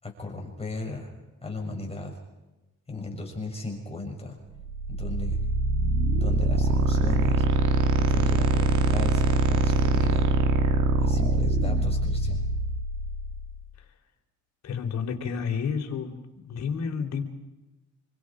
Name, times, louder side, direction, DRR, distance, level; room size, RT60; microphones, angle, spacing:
voice 1, 0.0-1.1 1.4-2.2 2.9-4.4 4.9-5.4 6.1-7.4 8.0-10.3 11.0-12.4, left 2 dB, 20° left, 0 dB, 6.7 m, -36 dB
sound 1, 4.6-13.5, right 3 dB, 75° right, 2.6 m, -23 dB
voice 2, 14.6-17.2, left 6 dB, 60° left, 5 dB, 3.8 m, -30 dB
27.0 x 25.0 x 5.1 m, 1.0 s
cardioid pair, 90°, 30 cm